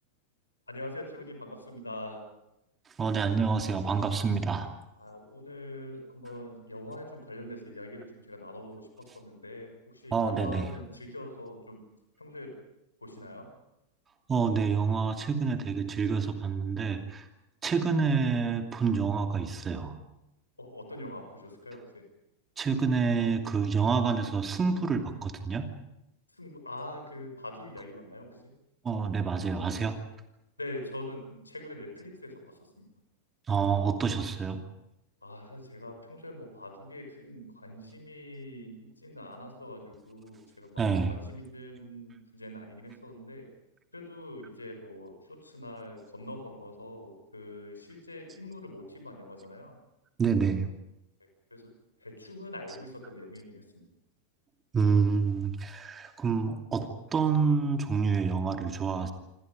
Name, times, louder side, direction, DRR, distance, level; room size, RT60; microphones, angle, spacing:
voice 1, 0.7-2.2 5.0-11.8 12.2-12.5 13.0-13.5 20.6-22.1 26.3-28.6 30.6-32.9 35.2-40.8 41.1-43.5 43.9-49.8 51.5-51.7 52.0-53.9, left 1 dB, 80° left, 4 dB, 6.1 m, -43 dB
voice 2, 3.0-4.7 10.1-10.7 14.3-17.2 17.6-20.0 22.6-25.7 28.8-30.0 33.5-34.6 40.8-41.2 50.2-50.7 52.7-52.8 54.7-59.1, right 5 dB, 20° right, 5 dB, 2.7 m, -28 dB
27.0 x 26.0 x 5.3 m, 0.87 s
figure-of-eight pair, 90°, 0 cm